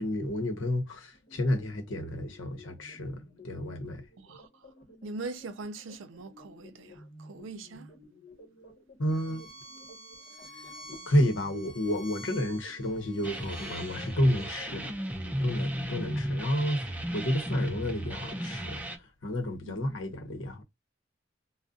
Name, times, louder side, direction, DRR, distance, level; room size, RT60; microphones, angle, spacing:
voice 1, 0.0-4.0 9.0-9.4 10.9-14.9 15.4-16.9 17.1-18.8 19.2-20.6, equal, 75° left, 0.8 m, -30 dB
sound 1, 1.1-16.2, left 1 dB, 45° left, 1.0 m, -53 dB
voice 2, 4.2-4.5 5.0-7.9 19.6-19.8, right 3 dB, 80° right, 0.5 m, -41 dB
Bowed string instrument, 9.1-14.5, equal, 25° left, 1.1 m, -49 dB
sound 2, 13.2-19.0, equal, 10° right, 0.5 m, -34 dB
2.4 x 2.1 x 3.7 m
head